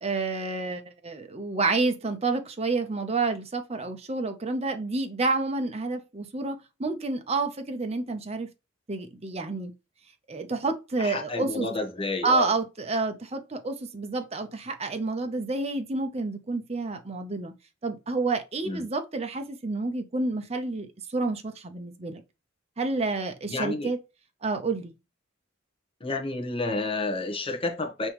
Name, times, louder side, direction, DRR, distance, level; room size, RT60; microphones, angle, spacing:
voice 1, 0.0-8.5 8.9-9.7 10.3-11.7 12.2-17.5 17.8-22.2 22.8-24.0 24.4-24.9, right 3 dB, 35° right, 0.8 m, -29 dB
voice 2, 11.0-12.5 18.6-18.8 23.5-23.9 26.0-28.1, left 3 dB, 30° left, 1.0 m, -30 dB
5.4 x 3.1 x 3.0 m
head